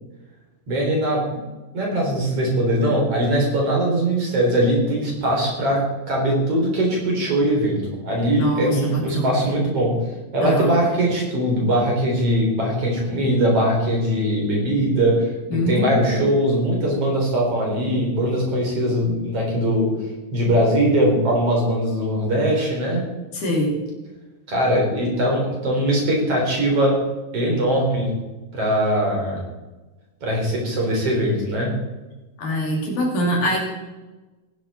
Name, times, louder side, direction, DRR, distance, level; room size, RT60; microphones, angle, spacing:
voice 1, 0.7-1.2 1.7-5.8 6.1-9.9 10.3-19.9 20.3-23.0 24.5-26.9 27.3-28.1 28.5-29.4 30.2-31.7, right 1 dB, 40° right, -1 dB, 4.5 m, -21 dB
voice 2, 8.4-9.5 10.4-10.8 15.5-16.3 23.3-23.8 32.4-33.6, equal, 60° left, -1 dB, 4.2 m, -24 dB
15.5 x 11.5 x 4.3 m, 1.2 s
omnidirectional pair, 4.1 m